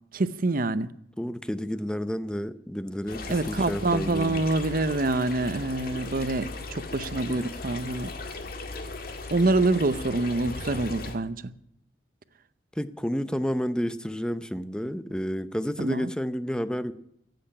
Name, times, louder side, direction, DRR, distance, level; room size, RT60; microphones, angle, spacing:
voice 1, 0.1-0.9 3.3-8.1 9.3-11.5 15.8-16.1, right 2 dB, 50° right, 0.7 m, -26 dB
voice 2, 1.2-4.4 12.8-16.9, equal, 5° left, 0.6 m, -30 dB
sound 1, 3.1-11.2, left 3 dB, 55° left, 1.8 m, -37 dB
15.5 x 8.0 x 9.9 m
head